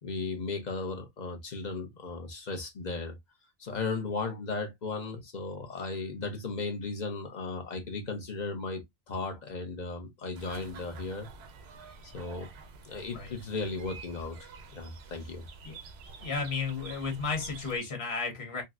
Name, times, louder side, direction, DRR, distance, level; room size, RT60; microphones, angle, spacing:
voice 1, 0.0-3.2 3.6-8.8 9.1-11.3 12.0-12.5 12.8-15.5, left 3 dB, 45° left, 0.9 m, -36 dB
sound 1, 10.3-17.8, right 4 dB, 80° right, 0.9 m, -49 dB
voice 2, 16.2-18.6, left 4 dB, 80° left, 1.4 m, -33 dB
4.0 x 2.1 x 2.3 m
omnidirectional pair, 1.1 m